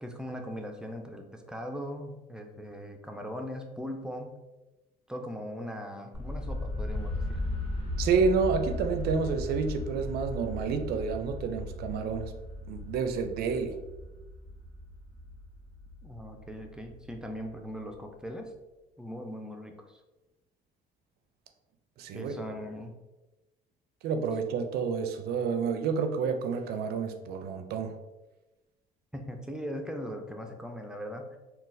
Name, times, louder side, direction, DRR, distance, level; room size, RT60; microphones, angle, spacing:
voice 1, 0.0-4.4 5.1-7.4 16.0-18.5 19.0-20.0 22.1-23.0 29.1-31.4, equal, 5° right, 4 dB, 0.4 m, -39 dB
sound 1, 6.1-18.0, left 1 dB, 55° left, 1.5 m, -37 dB
voice 2, 8.0-12.4 12.7-13.8 22.0-22.3 24.0-28.0, right 5 dB, 70° right, 7 dB, 0.4 m, -29 dB
3.8 x 2.3 x 2.5 m, 1.1 s
cardioid pair, 110°, 17 cm